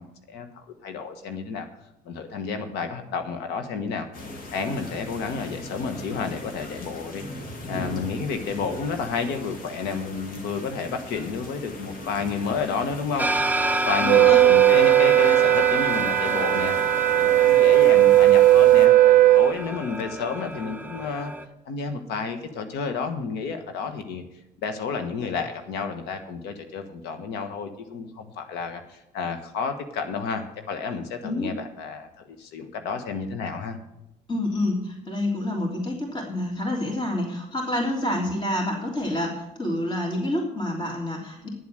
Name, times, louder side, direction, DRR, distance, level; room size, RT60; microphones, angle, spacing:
voice 1, 0.0-1.7 2.0-4.1 4.5-7.2 7.7-13.5 13.9-21.3 21.7-24.2 24.6-33.8, left 5 dB, 90° left, 7 dB, 1.4 m, -31 dB
sound 1, 4.1-18.9, left 1 dB, 55° left, 2.2 m, -40 dB
sound 2, 13.2-21.4, right 1 dB, 10° right, 0.8 m, -29 dB
voice 2, 14.0-14.4 31.2-31.5 34.3-41.5, left 1 dB, 30° left, -1 dB, 3.3 m, -28 dB
Wind instrument woodwind instrument, 14.1-19.5, right 14 dB, 60° right, 0.5 m, -17 dB
10.5 x 7.6 x 7.7 m, 0.86 s
cardioid pair, 110°, 17 cm